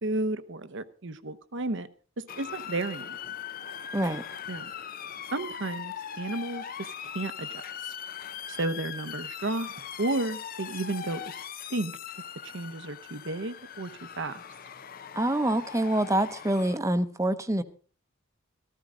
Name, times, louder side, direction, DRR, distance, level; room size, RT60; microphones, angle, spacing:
voice 1, 0.0-1.9 2.2-3.2 4.5-4.7 5.3-6.7 7.1-7.5 8.5-9.7 10.0-11.2 11.7-11.9 12.4-13.9 14.2-14.4, right 2 dB, 60° right, 0.9 m, -32 dB
Motor vehicle (road) / Siren, 2.3-16.8, left 8 dB, 45° left, 0.6 m, -40 dB
voice 2, 15.2-17.6, right 1 dB, 15° right, 0.8 m, -26 dB
15.0 x 14.0 x 3.9 m
head